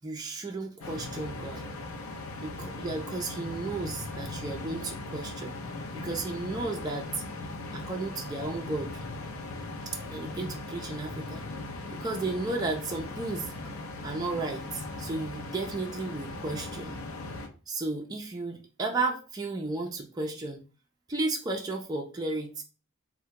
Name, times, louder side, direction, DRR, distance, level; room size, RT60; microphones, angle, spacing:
voice 1, 0.0-1.6 2.4-5.5 5.9-7.2 7.7-8.9 10.1-11.5 11.9-13.5 14.0-17.0 17.7-20.6 21.1-22.6, right 3 dB, 20° right, 0 dB, 0.4 m, -33 dB
sound 1, 0.8-17.5, left 2 dB, 75° left, 0.5 m, -39 dB
3.3 x 2.1 x 2.8 m, 0.35 s
head